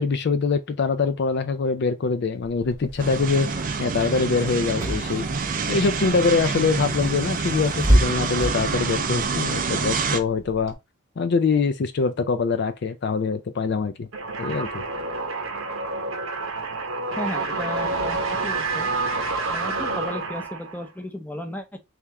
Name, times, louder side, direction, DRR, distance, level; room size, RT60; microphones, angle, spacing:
voice 1, 0.0-3.5 3.8-5.3 5.7-10.8 11.2-14.1 14.4-14.8, left 4 dB, 50° left, 0.4 m, -23 dB
Car / Engine, 2.4-10.7, equal, 15° right, 1.0 m, -29 dB
sound 1, 3.0-10.2, right 4 dB, 40° right, 0.4 m, -27 dB
sound 2, 14.1-20.9, right 3 dB, 70° right, 0.8 m, -28 dB
voice 2, 17.2-18.9 19.4-21.8, left 1 dB, 10° left, 0.6 m, -34 dB
3.5 x 3.4 x 2.8 m
head